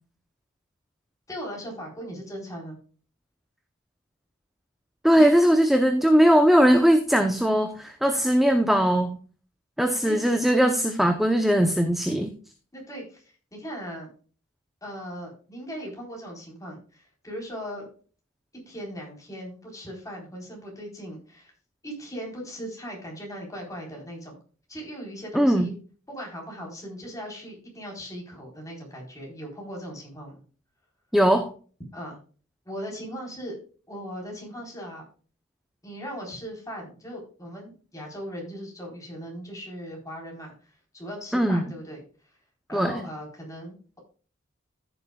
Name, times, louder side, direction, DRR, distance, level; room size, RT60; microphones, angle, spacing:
voice 1, 1.3-2.8 5.1-5.4 10.0-10.3 12.7-13.2 13.5-14.1 14.8-17.9 18.7-21.5 21.8-24.4 24.7-25.7 26.1-30.4 31.9-32.2 32.7-33.6 33.9-35.0 35.8-42.0 42.7-44.0, equal, 15° left, -1 dB, 3.9 m, -38 dB
voice 2, 5.0-9.2 9.8-12.3 25.3-25.8 31.1-31.5 41.3-41.7 42.7-43.0, equal, ahead, 6 dB, 0.7 m, -20 dB
14.5 x 7.0 x 2.3 m, 0.39 s
head